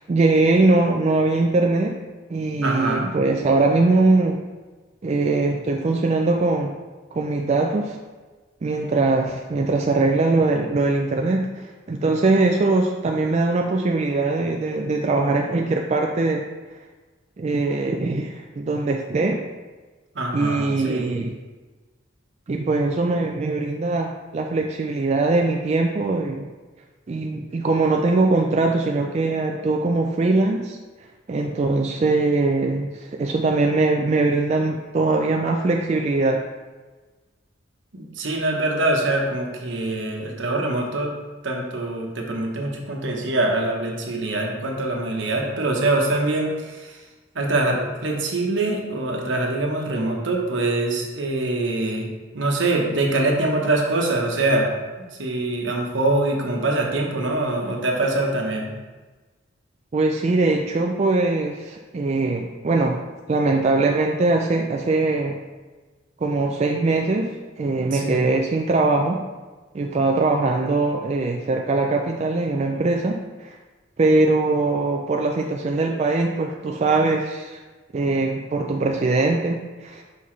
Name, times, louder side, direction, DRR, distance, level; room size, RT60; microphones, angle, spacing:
voice 1, 0.0-2.0 2.3-4.4 5.0-6.7 7.1-8.0 8.6-16.4 17.4-19.4 20.3-21.3 22.5-26.5 27.1-30.8 31.3-36.4 59.9-63.0 63.3-65.4 66.2-69.2 69.7-73.6 74.0-77.6 77.9-80.0, right 3 dB, 35° right, 1 dB, 0.3 m, -21 dB
voice 2, 2.6-3.1 20.1-21.1 37.9-41.1 41.4-47.0 47.3-52.1 52.3-54.7 55.0-58.7 67.9-68.3, right 2 dB, 70° right, 0 dB, 1.1 m, -24 dB
5.8 x 5.5 x 3.2 m, 1.3 s
head